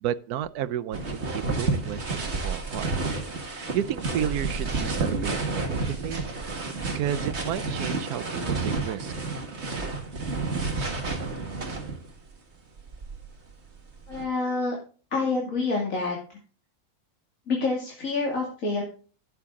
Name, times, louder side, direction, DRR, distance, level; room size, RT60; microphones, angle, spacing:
voice 1, 0.0-2.9 3.7-6.2 6.9-9.1, right 10 dB, 85° right, 1.2 m, -32 dB
sound 1, 0.9-12.2 12.8-14.2, right 3 dB, 45° right, 2.1 m, -30 dB
voice 2, 14.1-14.8 15.1-16.2 17.5-18.8, left 3 dB, 60° left, 2.9 m, -27 dB
11.5 x 8.3 x 3.7 m
omnidirectional pair, 1.6 m